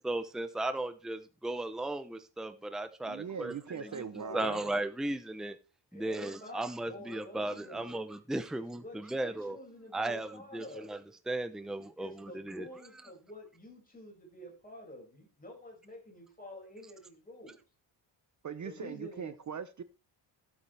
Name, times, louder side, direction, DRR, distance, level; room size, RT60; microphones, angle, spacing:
voice 1, 0.0-3.5 4.3-5.6 5.9-9.6 9.9-11.0 11.3-12.7, right 2 dB, ahead, 0.7 m, -36 dB
voice 2, 3.1-4.6 18.4-19.8, right 6 dB, 40° right, 0.8 m, -40 dB
voice 3, 3.9-4.8 5.9-8.0 8.5-11.0 11.6-11.7 12.0-17.6 18.6-19.3, left 1 dB, 20° left, 6.1 m, -49 dB
15.0 x 8.7 x 3.4 m
wide cardioid pair, 135°, 46 cm